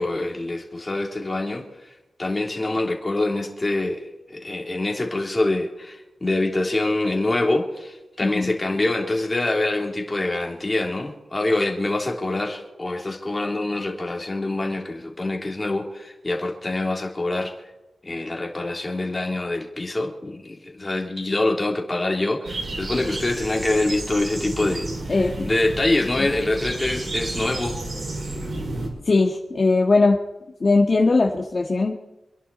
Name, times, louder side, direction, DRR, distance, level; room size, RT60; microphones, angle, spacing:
voice 1, 0.0-1.6 2.2-17.5 18.0-25.2 25.5-27.8, left 2 dB, 25° left, 1 dB, 3.4 m, -25 dB
sound 1, 22.4-28.9, right 2 dB, 55° right, 5.5 m, -31 dB
voice 2, 25.1-25.5 29.0-30.2 30.6-31.9, left 3 dB, 40° left, 0 dB, 1.7 m, -19 dB
27.0 x 11.0 x 4.3 m, 0.99 s
wide cardioid pair, 115°, 0 cm